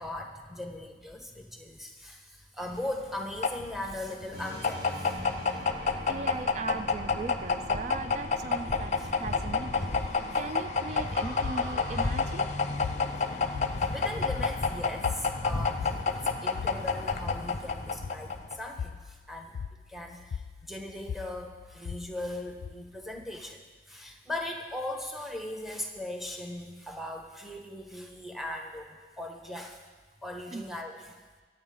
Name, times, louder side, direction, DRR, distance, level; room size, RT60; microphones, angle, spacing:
voice 1, 0.0-5.2 9.0-9.1 10.2-10.4 13.8-19.6 19.9-20.4 20.7-23.6 23.9-29.8 30.2-31.1, left 1 dB, ahead, 2 dB, 1.2 m, -39 dB
sound 1, 2.7-18.7, left 4 dB, 40° left, 0.7 m, -30 dB
sound 2, 4.3-12.1, equal, 55° right, 2.3 m, -43 dB
voice 2, 6.1-10.0 10.3-12.5 30.5-30.7, right 3 dB, 40° right, 11 dB, 0.4 m, -38 dB
sound 3, 11.4-23.4, left 6 dB, 85° left, 0.3 m, -41 dB
24.0 x 8.6 x 3.8 m, 1.4 s
head